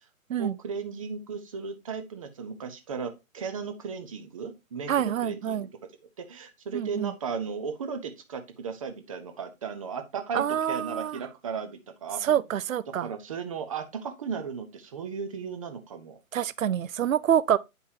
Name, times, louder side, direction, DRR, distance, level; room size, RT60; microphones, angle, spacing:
voice 1, 0.4-5.7 6.2-12.4 13.0-16.2, right 6 dB, 25° right, 0.8 m, -36 dB
voice 2, 4.9-5.7 6.7-7.1 10.3-11.2 12.2-13.1 16.3-17.6, right 10 dB, 70° right, 0.6 m, -26 dB
9.5 x 5.4 x 2.7 m
figure-of-eight pair, 145°, 42 cm